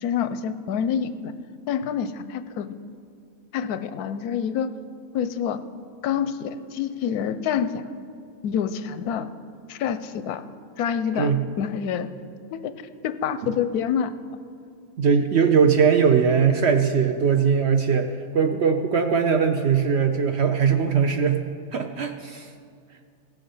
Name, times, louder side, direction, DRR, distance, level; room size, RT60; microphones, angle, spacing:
voice 1, 0.0-1.3 1.7-2.8 3.5-4.7 5.1-5.6 6.0-7.8 8.4-9.3 9.7-10.5 10.8-12.1 12.5-12.7 13.0-14.1, left 8 dB, 85° left, 12 dB, 1.1 m, -27 dB
voice 2, 15.0-21.4 21.7-22.5, right 6 dB, 65° right, 6 dB, 0.7 m, -20 dB
16.0 x 7.2 x 5.5 m, 2.3 s
omnidirectional pair, 1.6 m